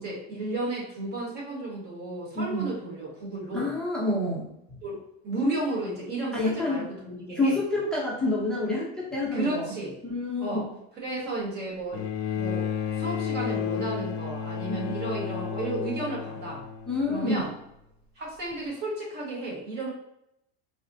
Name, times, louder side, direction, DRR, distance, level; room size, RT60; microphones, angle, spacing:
voice 1, 0.0-3.7 4.8-7.6 9.3-10.0 10.4-10.6 10.9-12.1 12.3-16.6 17.1-17.5 18.1-19.9, right 2 dB, 30° right, -4 dB, 1.3 m, -33 dB
voice 2, 2.3-2.7 3.5-4.5 6.3-6.8 7.3-9.7 10.0-10.7 14.7-14.9 16.9-17.5, left 2 dB, ahead, -7 dB, 0.6 m, -28 dB
Bowed string instrument, 11.9-17.4 18.5-18.6, left 7 dB, 50° left, 0.4 m, -32 dB
4.0 x 2.1 x 2.6 m, 0.82 s
supercardioid pair, 150°, 32 cm